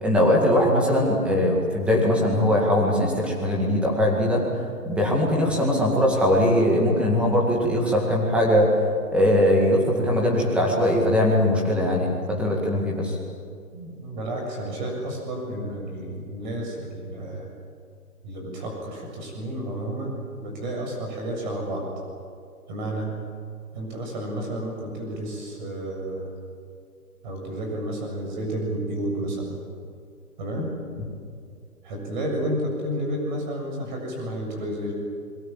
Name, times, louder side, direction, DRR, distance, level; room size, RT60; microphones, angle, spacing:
voice 1, 0.0-4.4 4.8-8.7 9.1-13.2, left 1 dB, ahead, -1 dB, 2.1 m, -21 dB
voice 2, 13.7-17.5 18.2-21.9 22.7-23.3 23.7-26.3 27.2-29.6 30.4-30.8 31.8-34.9, right 1 dB, 30° right, 1 dB, 7.3 m, -31 dB
29.5 x 22.0 x 7.4 m, 2.3 s
hypercardioid pair, 160°, 46 cm